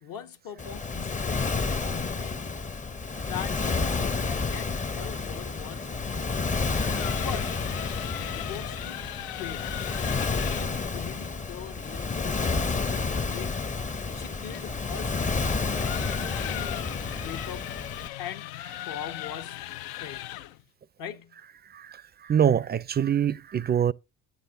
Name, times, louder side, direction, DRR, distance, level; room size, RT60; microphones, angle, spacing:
voice 1, 0.0-2.5 3.3-6.5 7.2-7.6 8.2-9.1 9.4-13.7 14.1-15.5 15.9-17.7 18.2-19.7 20.0-20.3 21.0-21.4, left 9 dB, 60° left, 1.1 m, -41 dB
Waves surf, 0.6-18.1, left 4 dB, 20° left, 0.6 m, -30 dB
sound 1, 6.7-10.8 13.4-20.6, left 14 dB, 80° left, 0.5 m, -38 dB
voice 2, 21.7-23.9, right 8 dB, 25° right, 0.4 m, -25 dB
9.7 x 9.5 x 2.6 m
supercardioid pair, 85°, 36 cm